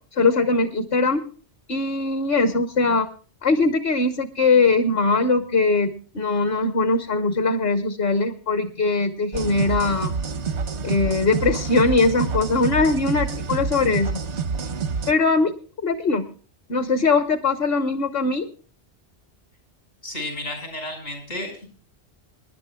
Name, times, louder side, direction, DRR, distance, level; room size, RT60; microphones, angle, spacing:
voice 1, 0.2-1.2 1.7-3.1 3.4-10.1 10.8-14.2 15.1-15.5 15.8-16.3 16.7-18.5, left 3 dB, 60° left, 8 dB, 1.2 m, -21 dB
sound 1, 9.3-15.1, right 5 dB, 85° right, 1.1 m, -28 dB
voice 2, 20.0-21.7, left 1 dB, 80° left, 4 dB, 5.7 m, -32 dB
27.5 x 11.0 x 2.2 m, 0.40 s
omnidirectional pair, 1.1 m